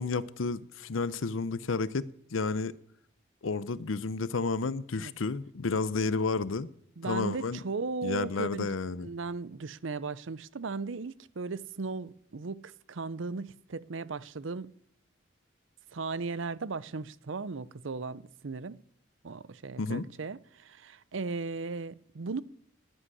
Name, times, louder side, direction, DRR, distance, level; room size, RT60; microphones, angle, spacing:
voice 1, 0.0-2.7 3.4-6.7 7.0-7.6 8.0-9.1 19.8-20.1, left 4 dB, 85° left, 0.7 m, -31 dB
voice 2, 7.0-8.7 9.0-14.7 15.9-18.8 19.2-22.4, right 4 dB, 75° right, 0.6 m, -37 dB
11.0 x 10.0 x 9.8 m
head